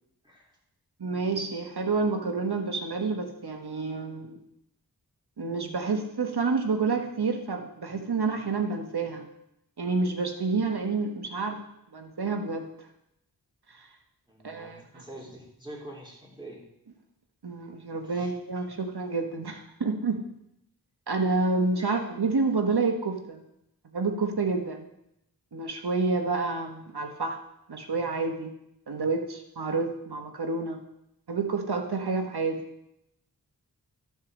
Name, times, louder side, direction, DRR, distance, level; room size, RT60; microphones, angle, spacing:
voice 1, 1.0-4.4 5.4-9.3 9.8-11.6 11.9-12.6 14.4-14.8 17.4-20.2 21.1-23.4 23.9-24.9 25.5-27.4 27.7-28.5 28.9-30.8 31.3-32.6, right 4 dB, 75° right, 4 dB, 1.3 m, -29 dB
voice 2, 14.3-16.7 18.0-18.3 18.7-18.8 21.8-22.0, right 1 dB, 10° right, -3 dB, 3.3 m, -46 dB
12.0 x 4.7 x 6.2 m, 0.81 s
wide cardioid pair, 40°, 39 cm